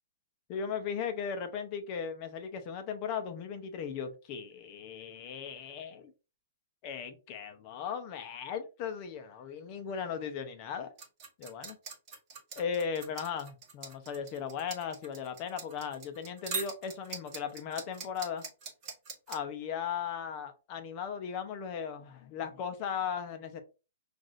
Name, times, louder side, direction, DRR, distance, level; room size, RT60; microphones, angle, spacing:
voice 1, 0.5-6.1 6.8-10.9 11.4-11.8 12.6-18.4 19.3-23.6, left 7 dB, 30° left, 0.7 m, -37 dB
sound 1, 11.0-19.4, right 5 dB, 25° right, 1.5 m, -42 dB
5.9 x 2.5 x 2.5 m
hypercardioid pair, 160°, 0 cm